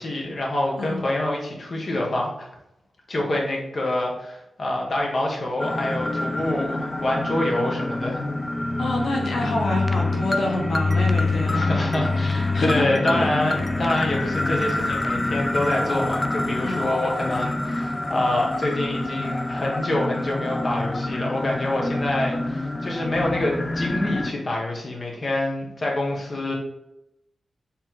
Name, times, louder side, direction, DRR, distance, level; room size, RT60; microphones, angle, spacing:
voice 1, 0.0-2.5 3.1-8.2 11.5-26.5, left 1 dB, 40° left, -2 dB, 1.6 m, -26 dB
sound 1, 5.6-24.3, left 2 dB, 20° left, 0.5 m, -26 dB
voice 2, 8.8-11.6 12.5-12.8 13.1-13.3 16.6-16.9, left 1 dB, 85° left, -1 dB, 1.2 m, -27 dB
7.3 x 3.7 x 3.9 m, 0.84 s
wide cardioid pair, 155°, 0 cm